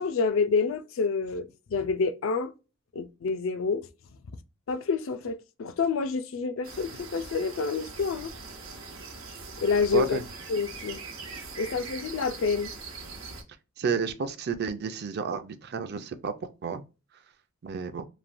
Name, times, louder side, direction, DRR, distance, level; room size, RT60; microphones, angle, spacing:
voice 1, 0.0-2.5 2.9-3.9 4.7-8.3 9.6-10.2 10.5-11.0 11.3-12.7, left 4 dB, 70° left, 0.4 m, -28 dB
sound 1, 6.6-13.4, right 4 dB, 85° right, 0.9 m, -42 dB
voice 2, 9.9-10.2 13.8-16.8 17.6-18.1, right 5 dB, 55° right, 0.4 m, -31 dB
3.2 x 2.2 x 2.5 m
head